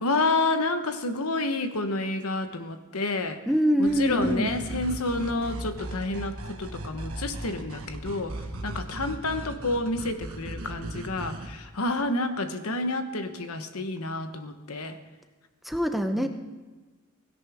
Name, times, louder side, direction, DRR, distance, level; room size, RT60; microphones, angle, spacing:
voice 1, 0.0-3.4 3.8-8.4 8.6-15.0 16.1-16.3, left 2 dB, 85° left, 8 dB, 1.1 m, -29 dB
voice 2, 3.5-4.5 15.6-16.3, equal, ahead, 6 dB, 0.7 m, -24 dB
sound 1, 3.9-11.5, right 1 dB, 75° right, 1.4 m, -37 dB
17.0 x 17.0 x 3.6 m, 1.3 s
head